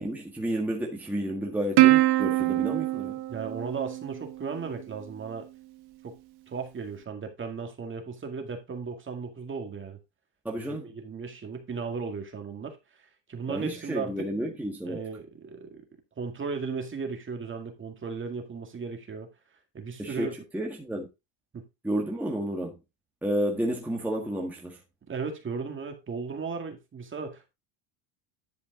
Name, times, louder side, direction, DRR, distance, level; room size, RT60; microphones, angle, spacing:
voice 1, 0.0-3.2 10.4-10.9 13.5-15.0 20.0-20.3 20.5-21.1 21.8-22.8 23.2-24.8, right 1 dB, 5° right, 1.6 m, -31 dB
Plucked string instrument, 1.8-4.5, right 17 dB, 50° right, 1.0 m, -23 dB
voice 2, 3.3-5.5 6.0-6.2 6.5-10.0 10.6-14.2 14.9-15.8 16.2-19.3 19.7-20.3 21.5-21.7 25.1-27.5, right 5 dB, 25° right, 2.1 m, -36 dB
10.5 x 5.0 x 3.8 m
supercardioid pair, 125°, 48 cm